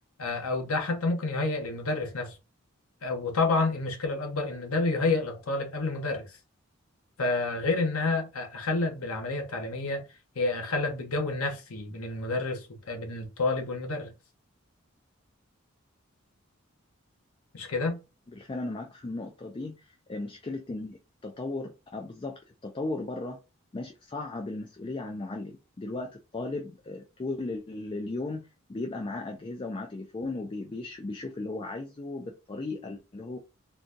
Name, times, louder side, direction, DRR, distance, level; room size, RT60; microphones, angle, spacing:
voice 1, 0.2-2.4 3.0-6.2 7.2-10.0 10.4-14.1 17.5-18.0, left 3 dB, 85° left, 0.9 m, -29 dB
voice 2, 18.3-23.4 23.7-33.4, left 2 dB, 25° left, 0.3 m, -36 dB
3.8 x 2.3 x 2.5 m
head